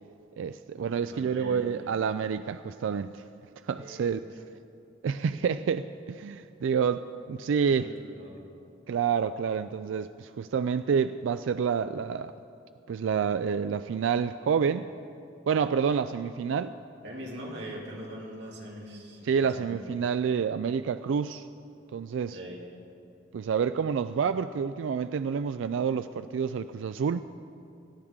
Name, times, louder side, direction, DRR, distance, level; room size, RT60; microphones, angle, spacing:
voice 1, 0.4-3.2 3.6-4.2 5.0-5.8 6.1-7.0 7.3-7.9 8.9-12.3 12.9-14.9 15.5-16.7 19.2-21.4 21.9-22.4 23.3-27.2, right 6 dB, 80° right, 11 dB, 0.3 m, -28 dB
voice 2, 1.0-1.9 3.7-4.3 5.5-5.6 7.6-8.5 17.0-19.8 22.3-22.6, equal, 60° right, -3 dB, 2.8 m, -42 dB
19.5 x 13.5 x 3.7 m, 2.6 s
head